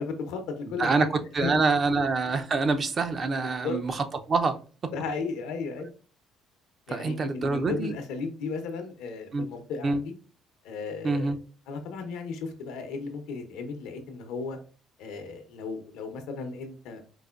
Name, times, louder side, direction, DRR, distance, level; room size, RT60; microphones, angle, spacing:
voice 1, 0.0-1.1 1.4-1.6 3.4-3.8 4.9-5.9 6.9-10.1 10.6-11.3 11.7-14.6 15.0-17.0, left 4 dB, 85° left, 0.8 m, -35 dB
voice 2, 0.8-4.9 6.9-7.9 9.3-9.5 9.8-10.0 11.0-11.4, right 3 dB, 40° right, 0.5 m, -26 dB
4.7 x 2.1 x 2.4 m
cardioid pair, 95°, 0 cm